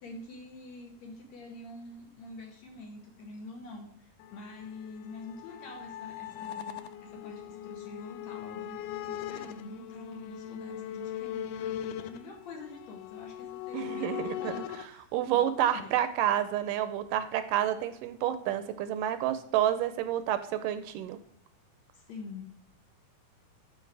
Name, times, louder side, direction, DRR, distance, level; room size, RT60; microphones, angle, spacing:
voice 1, 0.0-16.0 21.9-22.8, left 3 dB, 65° left, 2 dB, 2.0 m, -46 dB
sound 1, 4.2-14.9, left 11 dB, 80° left, 2.0 m, -40 dB
voice 2, 13.7-14.5 15.1-21.2, right 11 dB, 80° right, 11 dB, 2.1 m, -29 dB
12.0 x 5.2 x 3.3 m, 0.71 s
omnidirectional pair, 3.9 m